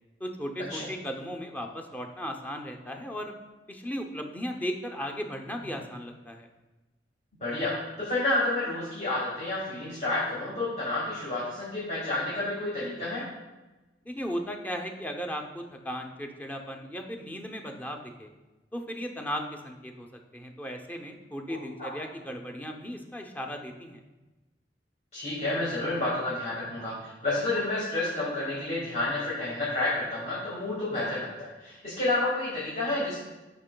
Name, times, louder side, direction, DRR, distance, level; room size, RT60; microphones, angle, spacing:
voice 1, 0.2-3.3 3.7-6.5 14.0-18.3 18.7-20.1 20.3-24.0, equal, 10° left, 3 dB, 0.6 m, -36 dB
voice 2, 7.4-13.2 21.8-21.9 25.1-33.2, left 2 dB, 40° left, -7 dB, 1.8 m, -30 dB
11.5 x 5.8 x 2.2 m, 1.1 s
head